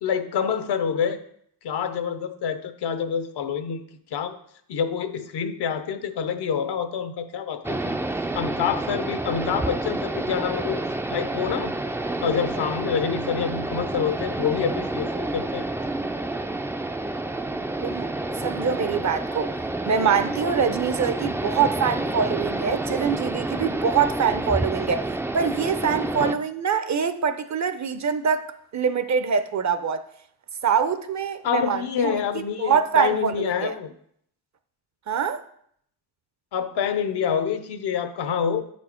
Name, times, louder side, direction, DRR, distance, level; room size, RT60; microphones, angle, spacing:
voice 1, 0.0-1.2 1.6-3.8 4.1-4.4 4.7-8.0 8.3-10.8 11.1-11.7 12.2-15.7 24.0-24.1 26.2-26.3 31.4-33.9 36.5-38.6, left 7 dB, 75° left, 0.8 m, -27 dB
sound 1, 7.6-26.3, right 2 dB, 5° right, 0.3 m, -29 dB
voice 2, 18.4-19.5 19.8-30.0 30.6-33.8 35.1-35.4, right 7 dB, 45° right, 0.6 m, -24 dB
7.9 x 4.4 x 4.4 m
cardioid pair, 70°, 41 cm